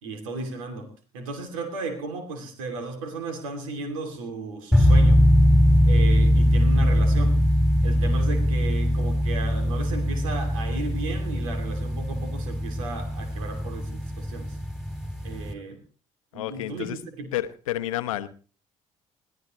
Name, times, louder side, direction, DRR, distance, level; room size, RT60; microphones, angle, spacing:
voice 1, 0.0-5.3 5.9-7.4 7.8-14.6 15.2-15.8 16.3-17.3, right 2 dB, 75° right, 5 dB, 2.7 m, -35 dB
sound 1, 4.7-15.5, equal, ahead, 3.4 m, -21 dB
voice 2, 16.3-17.0 17.3-18.3, left 13 dB, 75° left, 13 dB, 0.9 m, -30 dB
21.0 x 16.5 x 3.1 m, 0.39 s
figure-of-eight pair, 55°, 17 cm